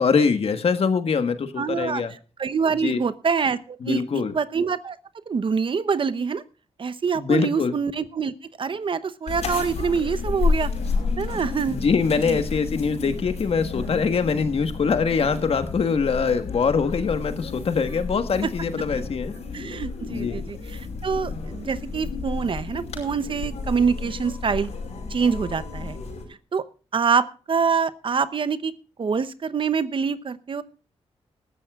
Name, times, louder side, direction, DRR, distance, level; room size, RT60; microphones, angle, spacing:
voice 1, 0.0-2.1 2.8-3.0 3.8-4.3 7.1-7.7 11.7-19.3 20.1-20.4, left 5 dB, 60° left, 9 dB, 1.4 m, -23 dB
voice 2, 1.6-2.0 2.4-4.0 4.3-5.0 5.3-6.4 6.8-10.7 11.2-11.8 12.2-12.4 18.4-18.5 19.5-24.7 25.1-26.0 26.5-26.6 26.9-28.7 29.0-30.6, right 6 dB, 50° right, 13 dB, 0.8 m, -25 dB
sound 1, 9.3-26.2, left 4 dB, 80° left, 5.3 m, -31 dB
20.5 x 13.0 x 2.4 m, 0.36 s
cardioid pair, 95°, 11 cm